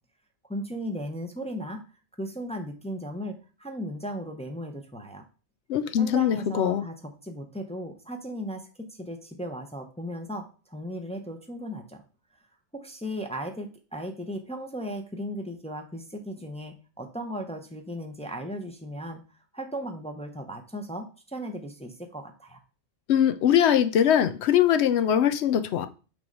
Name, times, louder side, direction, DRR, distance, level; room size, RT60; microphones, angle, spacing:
voice 1, 0.5-1.8 2.2-5.2 6.0-12.0 12.7-19.2 19.5-22.6, equal, 5° left, 0.6 m, -36 dB
voice 2, 5.7-6.8 23.1-25.9, left 9 dB, 80° left, 0.9 m, -22 dB
6.2 x 3.1 x 5.3 m
omnidirectional pair, 1.1 m